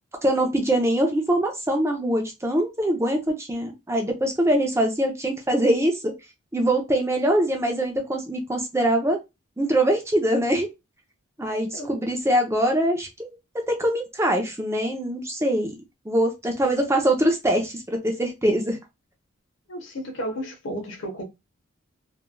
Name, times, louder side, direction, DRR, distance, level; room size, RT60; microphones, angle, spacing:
voice 1, 0.2-6.1 6.5-9.2 9.6-10.7 11.4-13.4 13.7-15.7 16.1-18.8, right 1 dB, 15° right, 0.6 m, -23 dB
voice 2, 19.7-21.2, equal, 65° left, 1.0 m, -33 dB
3.1 x 2.4 x 2.2 m
head